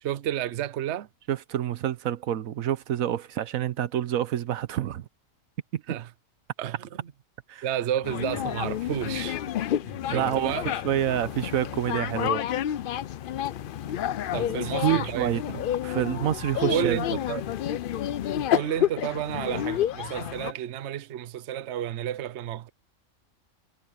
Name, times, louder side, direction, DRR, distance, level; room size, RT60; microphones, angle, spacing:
voice 1, 0.0-1.1 5.9-6.1 6.6-7.1 7.6-9.4 10.1-10.7 14.3-15.3 16.6-17.4 18.5-22.7, right 10 dB, 60° right, 1.0 m, -31 dB
voice 2, 1.3-5.0 5.7-5.8 7.5-7.7 9.8-10.5 10.8-12.4 14.6-17.0, right 11 dB, 85° right, 1.2 m, -28 dB
sound 1, 8.0-20.5, left 11 dB, 65° left, 0.5 m, -30 dB
omnidirectional pair, 1.4 m